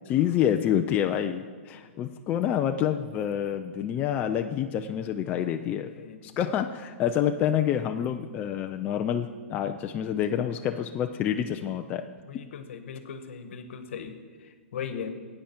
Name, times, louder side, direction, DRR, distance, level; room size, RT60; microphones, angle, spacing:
voice 1, 0.1-5.9 6.2-12.1 12.3-12.4, left 10 dB, 20° left, 6 dB, 0.4 m, -27 dB
voice 2, 6.0-6.3 12.3-14.1 14.7-15.1, left 7 dB, 65° left, 9 dB, 1.2 m, -38 dB
15.5 x 8.8 x 4.4 m, 1.5 s
hypercardioid pair, 155°, 7 cm